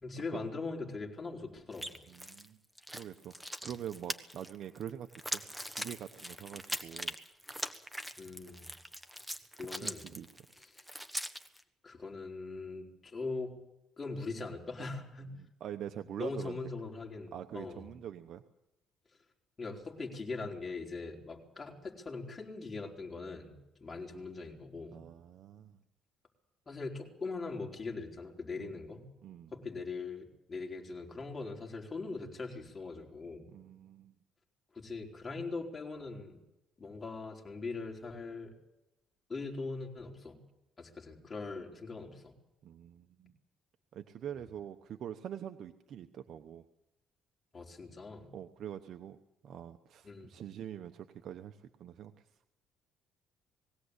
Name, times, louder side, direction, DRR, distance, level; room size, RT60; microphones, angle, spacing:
voice 1, 0.0-2.0 8.2-8.7 9.6-10.1 10.7-10.9 11.8-13.6 14.0-15.4 16.2-17.9 19.6-25.0 26.7-29.1 29.5-33.4 34.7-36.4 36.8-38.5 39.3-40.4 40.8-42.3 47.5-48.3 50.0-50.3, left 3 dB, 25° left, 0 dB, 4.3 m, -41 dB
sound 1, 1.7-2.5 2.8-11.6, equal, 5° right, 1.5 m, -41 dB
voice 2, 2.1-2.6 2.9-3.3 3.6-7.2 9.6-10.3 15.3-16.6 17.3-18.4 24.9-25.8 28.6-28.7 29.2-29.5 33.5-34.1 42.6-43.3 43.9-46.7 48.3-49.2 49.4-52.1, right 9 dB, 60° right, 7 dB, 1.0 m, -44 dB
20.5 x 16.5 x 8.3 m, 0.89 s
cardioid pair, 105°, 0 cm